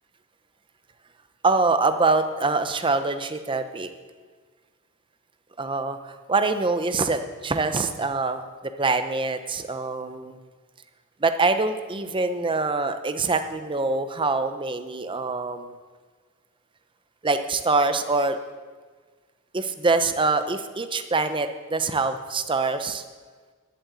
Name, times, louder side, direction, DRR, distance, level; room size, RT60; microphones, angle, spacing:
voice 1, 1.4-3.9 5.6-10.4 11.2-15.7 17.2-18.4 19.5-23.0, right 3 dB, 25° right, 8 dB, 0.7 m, -24 dB
11.0 x 7.6 x 8.2 m, 1.4 s
head